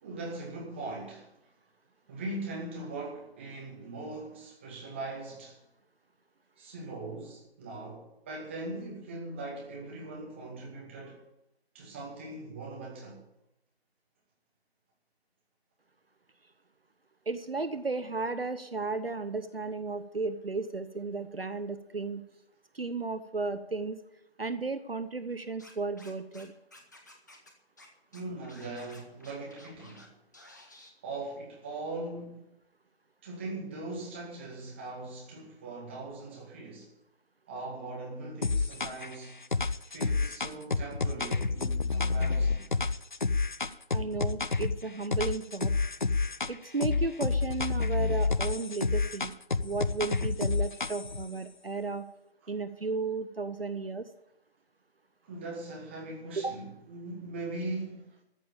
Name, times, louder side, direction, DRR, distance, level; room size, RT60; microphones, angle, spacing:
voice 1, 0.0-1.3 2.1-5.6 6.6-11.2 11.7-13.2 28.1-30.1 31.0-32.4 33.2-36.9 37.5-39.4 39.8-42.7 55.2-58.0, right 2 dB, 10° right, 2.1 m, -40 dB
voice 2, 17.3-22.2 22.7-24.0 24.4-26.5 43.9-45.7 46.5-49.3 49.6-52.1 52.5-54.1 56.4-56.6, right 3 dB, 65° right, 1.0 m, -34 dB
Scratching (performance technique), 25.6-26.4 26.7-27.5 27.8-27.9 28.1-30.1 30.3-30.9, left 1 dB, 15° left, 1.1 m, -53 dB
sound 1, 38.4-39.1 39.5-44.8 45.1-46.5 46.8-51.2, left 4 dB, 50° left, 0.6 m, -29 dB
14.0 x 7.2 x 8.9 m
figure-of-eight pair, 160°, 32 cm